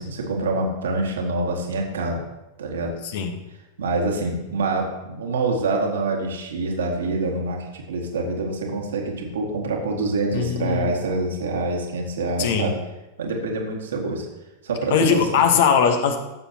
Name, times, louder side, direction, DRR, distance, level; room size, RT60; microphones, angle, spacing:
voice 1, 0.0-2.2 2.6-2.9 3.8-12.8 13.2-14.3 14.6-15.4, right 2 dB, 65° right, 0 dB, 2.0 m, -26 dB
voice 2, 10.3-10.9 12.4-12.7 14.9-16.2, left 7 dB, 55° left, 7 dB, 1.1 m, -20 dB
14.0 x 7.0 x 2.9 m, 0.97 s
figure-of-eight pair, 90°, 0 cm